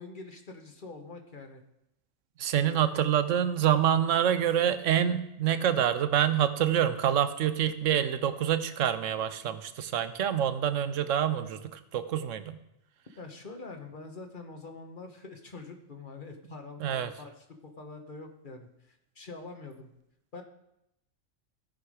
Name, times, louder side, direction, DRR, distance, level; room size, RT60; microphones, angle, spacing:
voice 1, 0.0-1.6 2.6-2.8 13.2-18.7 19.1-19.9 20.3-20.4, left 3 dB, 45° left, 4 dB, 1.2 m, -44 dB
voice 2, 2.4-12.6 16.8-17.1, right 9 dB, 80° right, 11 dB, 1.0 m, -26 dB
15.5 x 5.8 x 4.8 m, 0.83 s
omnidirectional pair, 1.3 m